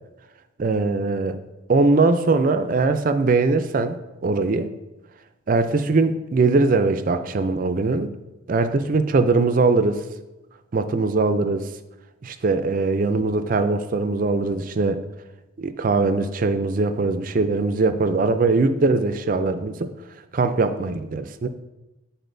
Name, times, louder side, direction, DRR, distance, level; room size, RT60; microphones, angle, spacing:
voice 1, 0.6-1.4 1.7-4.0 4.2-4.7 5.5-8.1 8.5-10.0 10.7-11.7 12.2-15.0 15.6-19.9 20.3-21.5, right 3 dB, 40° right, 0.4 m, -21 dB
11.0 x 4.2 x 2.6 m
head